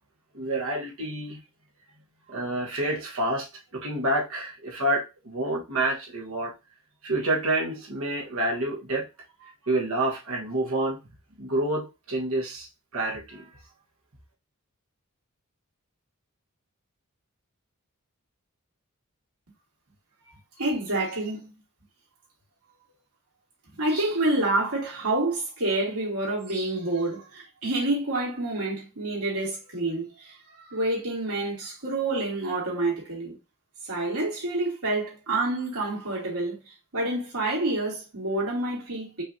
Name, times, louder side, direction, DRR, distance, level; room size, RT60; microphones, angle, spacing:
voice 1, 0.3-1.4 2.3-3.5 3.7-6.5 7.0-9.1 9.6-11.0 11.4-12.7 12.9-13.5, right 1 dB, 65° right, 1.3 m, -28 dB
voice 2, 20.6-21.5 23.7-33.4 33.8-36.6 36.9-39.2, right 2 dB, 80° right, 2.8 m, -28 dB
5.5 x 3.3 x 2.7 m
head